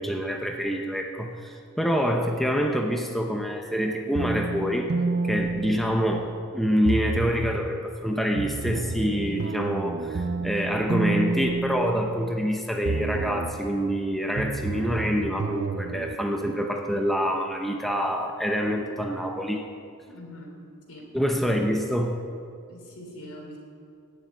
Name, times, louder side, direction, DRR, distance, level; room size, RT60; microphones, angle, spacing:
voice 1, 0.0-4.9 5.2-6.3 6.5-19.7 21.1-22.1, equal, ahead, 2 dB, 0.8 m, -26 dB
sound 1, 4.1-6.4 6.8-7.7 8.4-12.5 12.8-13.7 14.4-16.1, right 3 dB, 45° right, 0.4 m, -30 dB
voice 2, 20.1-20.5 20.9-21.1 22.7-23.6, left 1 dB, 75° left, 0 dB, 3.7 m, -43 dB
16.0 x 7.2 x 9.2 m, 2.4 s
head